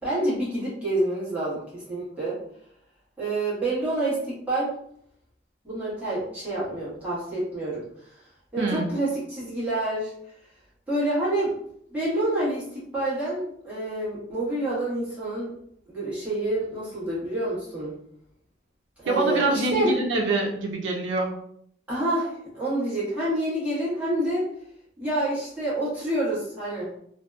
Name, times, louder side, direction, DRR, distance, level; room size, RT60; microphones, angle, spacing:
voice 1, 0.0-2.4 3.2-4.2 4.5-4.7 5.6-8.1 8.5-10.1 10.9-11.5 11.9-15.5 15.9-17.9 19.0-19.9 21.9-24.4 25.0-26.9, right 1 dB, 10° right, -10 dB, 1.1 m, -27 dB
voice 2, 8.6-8.9 19.1-21.3, right 2 dB, 90° right, 1 dB, 0.4 m, -25 dB
2.6 x 2.1 x 2.2 m, 0.70 s
head